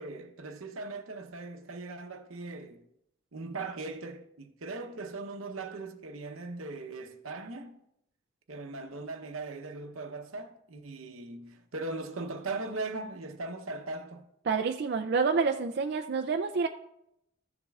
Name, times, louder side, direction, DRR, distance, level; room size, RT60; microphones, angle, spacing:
voice 1, 0.0-2.8 3.3-7.8 8.5-14.3, right 3 dB, 85° right, 0.8 m, -39 dB
voice 2, 14.5-16.7, right 5 dB, 50° right, 0.4 m, -28 dB
14.0 x 7.2 x 2.4 m
head